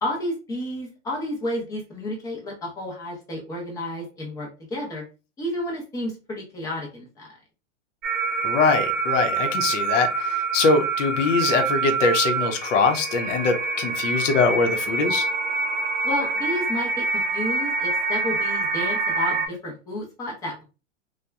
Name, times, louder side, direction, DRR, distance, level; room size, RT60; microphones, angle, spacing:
voice 1, 0.0-5.0 5.4-7.4 16.0-20.6, left 1 dB, 10° left, 0 dB, 0.5 m, -31 dB
sound 1, 8.0-19.5, right 4 dB, 40° right, 0.6 m, -26 dB
voice 2, 8.4-15.3, left 4 dB, 70° left, 5 dB, 0.8 m, -22 dB
2.8 x 2.2 x 2.2 m, 0.31 s
hypercardioid pair, 145°, 38 cm